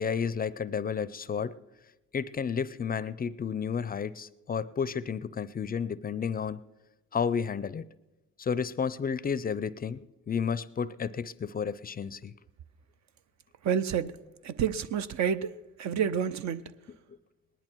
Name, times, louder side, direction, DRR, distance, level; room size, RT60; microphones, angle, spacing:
voice 1, 0.0-1.6 2.1-6.6 7.1-7.9 8.4-12.3, left 6 dB, 30° left, 0.4 m, -31 dB
voice 2, 13.6-14.1 14.4-15.5 15.8-16.6, right 8 dB, 65° right, 0.7 m, -29 dB
19.0 x 10.5 x 4.5 m
cardioid pair, 90°, 30 cm